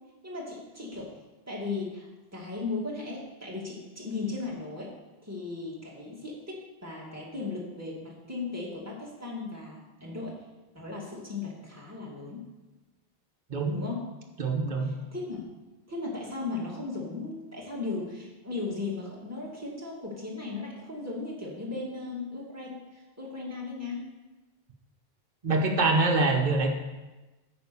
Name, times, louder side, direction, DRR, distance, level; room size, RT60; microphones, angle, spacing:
voice 1, 0.2-1.1 1.5-4.9 5.2-10.4 10.7-12.4 13.7-14.0 14.8-15.4 15.9-24.1, left 3 dB, 15° right, -5 dB, 2.3 m, -36 dB
voice 2, 14.4-14.9 25.4-26.7, right 3 dB, 50° right, 0 dB, 1.2 m, -24 dB
9.2 x 4.8 x 6.9 m, 1.1 s
omnidirectional pair, 1.0 m